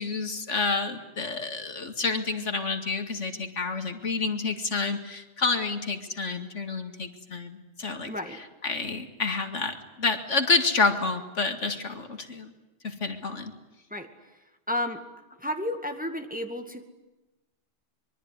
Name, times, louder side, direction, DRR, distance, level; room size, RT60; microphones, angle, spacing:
voice 1, 0.0-8.1 8.6-12.5 12.8-13.5, left 4 dB, 70° left, 7 dB, 2.4 m, -29 dB
voice 2, 8.1-8.4 13.9-14.1 14.7-15.0 15.4-16.8, left 1 dB, 5° right, 5 dB, 2.1 m, -32 dB
24.5 x 23.5 x 9.7 m, 1.0 s
omnidirectional pair, 1.3 m